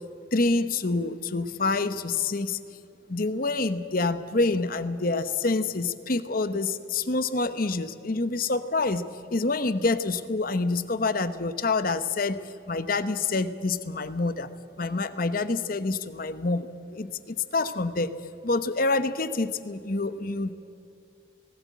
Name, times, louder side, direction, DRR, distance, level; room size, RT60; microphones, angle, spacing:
voice 1, 0.3-2.6 3.1-12.4 12.7-14.5 14.8-18.1 18.4-20.5, left 3 dB, 45° left, 12 dB, 0.9 m, -27 dB
19.0 x 17.5 x 8.5 m, 2.6 s
head